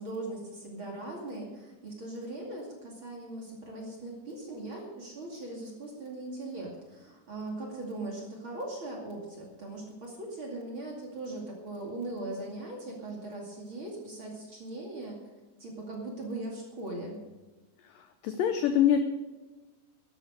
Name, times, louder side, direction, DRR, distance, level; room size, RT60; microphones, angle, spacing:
voice 1, 0.0-15.2 15.6-17.2, right 2 dB, 35° right, -1 dB, 2.5 m, -39 dB
voice 2, 17.9-19.1, left 9 dB, 85° left, 7 dB, 1.9 m, -25 dB
12.5 x 11.5 x 6.4 m, 1.2 s
omnidirectional pair, 5.0 m